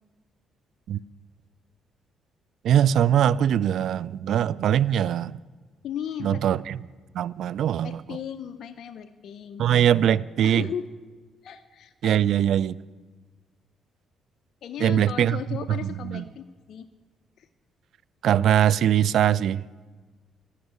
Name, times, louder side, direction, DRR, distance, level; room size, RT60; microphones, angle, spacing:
voice 1, 2.6-5.4 6.2-6.8 7.1-8.0 9.6-10.7 12.0-12.8 14.8-16.2 18.2-19.6, right 10 dB, 70° right, 0.4 m, -22 dB
voice 2, 5.8-6.4 7.8-9.7 10.4-10.8 11.4-12.2 14.6-16.9 17.4-17.5, left 9 dB, 65° left, 0.6 m, -36 dB
17.0 x 6.4 x 9.4 m
cardioid pair, 80°, 0 cm